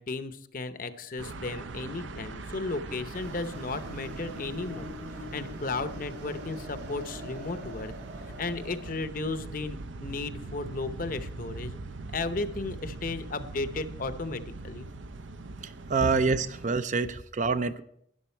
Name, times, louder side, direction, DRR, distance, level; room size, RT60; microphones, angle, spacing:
voice 1, 0.0-7.9 8.3-11.8 12.1-14.9 16.0-16.1, left 3 dB, 45° left, 11 dB, 0.7 m, -35 dB
sound 1, 1.2-16.7, right 3 dB, 75° right, 0.6 m, -41 dB
sound 2, 3.1-8.9, left 1 dB, 60° right, 2.8 m, -44 dB
voice 2, 15.6-17.8, right 4 dB, 40° right, 12 dB, 0.5 m, -27 dB
13.0 x 11.0 x 4.4 m, 0.69 s
head